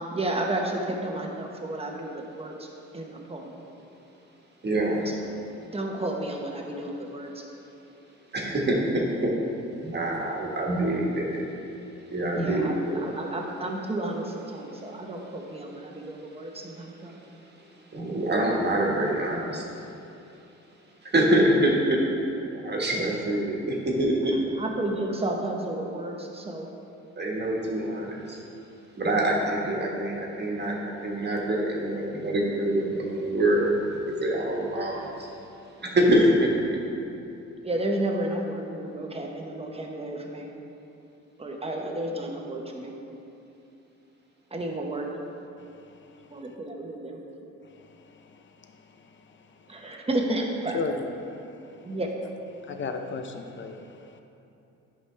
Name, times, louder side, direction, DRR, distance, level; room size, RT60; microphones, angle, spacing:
voice 1, 0.0-2.5 2.9-3.5 5.7-7.3 12.3-12.7 13.0-17.2 24.6-26.7 37.6-40.5 41.4-42.9 44.5-45.1 46.3-47.2 49.7-50.8 51.8-52.1, right 1 dB, 20° right, 1 dB, 1.1 m, -32 dB
voice 2, 4.6-5.0 8.3-9.3 9.8-11.4 12.1-13.1 17.9-19.6 21.0-22.0 22.5-24.3 27.2-28.4 29.0-35.3 35.8-36.5 41.8-42.0, right 1 dB, 35° right, -2 dB, 1.6 m, -25 dB
voice 3, 50.7-51.1 52.7-54.2, left 4 dB, 40° left, 5 dB, 0.7 m, -33 dB
11.0 x 5.3 x 3.4 m, 2.8 s
cardioid pair, 90°, 30 cm